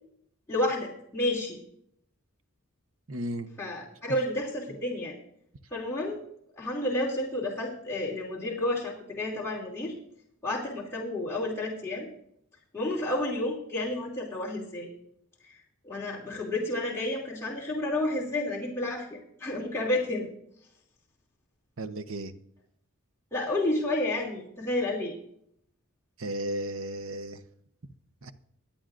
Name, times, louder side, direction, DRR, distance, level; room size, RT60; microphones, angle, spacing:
voice 1, 0.5-1.6 3.6-5.2 5.7-6.2 6.6-9.9 10.4-12.1 12.7-14.9 15.4-15.6 15.8-20.3 23.3-25.1, left 1 dB, 10° left, -5 dB, 2.7 m, -30 dB
voice 2, 3.1-3.5 21.8-22.3 26.2-27.4 28.2-28.3, right 1 dB, 65° right, 10 dB, 0.9 m, -34 dB
24.5 x 8.8 x 2.5 m, 0.70 s
head